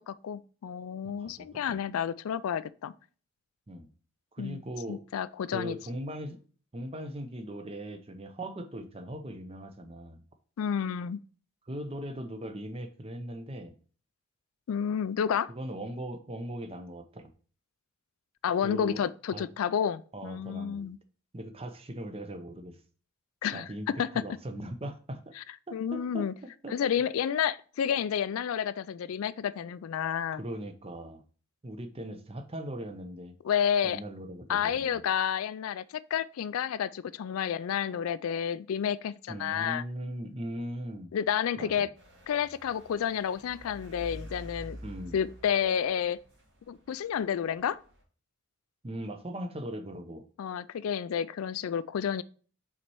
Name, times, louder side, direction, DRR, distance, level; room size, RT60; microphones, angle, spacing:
voice 1, 0.1-2.9 4.4-4.6 4.9-5.8 10.6-11.2 14.7-15.5 18.4-21.0 23.4-24.2 25.4-25.5 25.7-26.3 26.7-30.4 33.4-34.0 34.5-39.8 41.1-41.9 42.3-44.8 45.1-46.2 46.7-47.8 50.4-52.2, left 8 dB, 75° left, 0.3 m, -30 dB
voice 2, 1.2-1.8 3.7-3.9 4.3-5.0 5.5-6.4 6.7-10.2 11.7-13.7 15.5-17.3 18.6-19.0 19.3-19.4 20.1-20.9 21.3-22.8 23.5-23.9 24.1-25.3 25.9-26.3 26.6-26.7 30.3-31.2 31.6-33.3 33.8-35.0 39.3-41.1 41.6-41.9 44.8-45.2 48.8-50.2, right 1 dB, 25° right, 0.7 m, -39 dB
sound 1, 42.0-48.0, equal, 55° right, 2.2 m, -48 dB
5.8 x 4.2 x 4.6 m
head